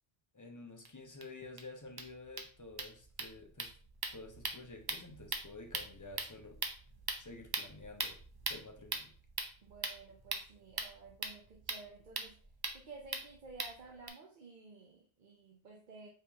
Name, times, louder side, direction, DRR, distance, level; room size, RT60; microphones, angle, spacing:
voice 1, 0.3-3.7 4.1-6.6 7.2-8.2 8.5-9.1, left 3 dB, 20° left, 0.6 m, -50 dB
sound 1, 0.8-0.9 1.2-1.3 1.6-1.7 1.9-14.1, right 3 dB, 30° right, 0.4 m, -42 dB
voice 2, 9.6-12.4 12.7-16.1, right 3 dB, 50° right, 0.8 m, -53 dB
4.8 x 3.0 x 3.4 m
omnidirectional pair, 1.1 m